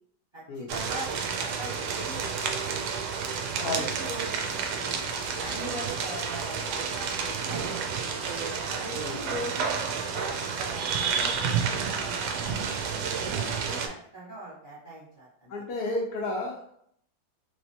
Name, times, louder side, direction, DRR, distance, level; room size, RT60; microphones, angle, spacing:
voice 1, 0.3-2.6 3.5-5.0 5.3-8.3 8.8-9.7 10.1-12.7 13.2-15.5, right 1 dB, 30° right, -8 dB, 1.1 m, -41 dB
sound 1, 0.7-13.9, right 6 dB, 75° right, 1.0 m, -30 dB
voice 2, 15.5-16.7, left 2 dB, 70° left, -2 dB, 0.9 m, -32 dB
3.3 x 3.1 x 2.8 m, 0.70 s
omnidirectional pair, 2.1 m